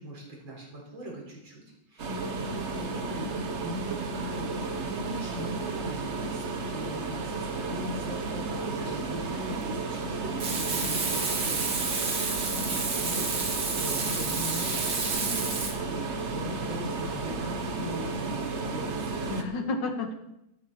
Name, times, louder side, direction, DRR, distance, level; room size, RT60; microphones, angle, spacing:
voice 1, 0.0-1.6 1.9-3.3 3.6-4.6 4.9-11.6 11.9-12.5 13.0-19.4, equal, 80° right, -1 dB, 4.8 m, -40 dB
sound 1, 2.0-19.4, right 3 dB, 40° right, 1.2 m, -33 dB
voice 2, 2.1-2.4 12.5-12.9 19.3-20.1, left 3 dB, 65° left, 5 dB, 2.1 m, -33 dB
Frying (food), 10.4-15.7, right 4 dB, 60° right, 2.4 m, -30 dB
13.5 x 12.0 x 4.4 m, 0.84 s
omnidirectional pair, 2.1 m